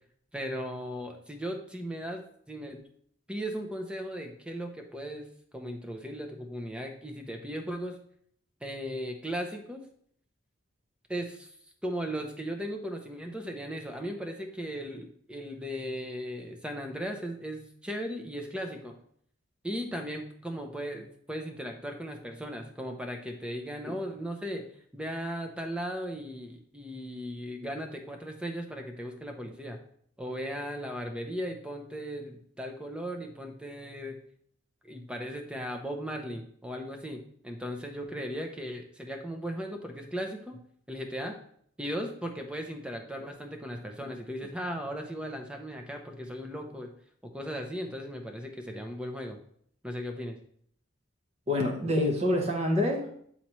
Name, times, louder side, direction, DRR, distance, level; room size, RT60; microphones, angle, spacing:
voice 1, 0.3-2.8 3.3-5.3 5.5-8.0 8.6-9.8 11.1-11.5 11.8-19.0 19.6-24.6 24.9-29.8 30.2-34.2 34.8-40.6 40.9-41.4 41.8-46.9 47.2-49.4 49.8-50.4, equal, 5° right, 3 dB, 0.6 m, -37 dB
voice 2, 51.5-53.3, left 1 dB, 35° right, 1 dB, 1.1 m, -27 dB
8.7 x 4.2 x 3.1 m, 0.65 s
head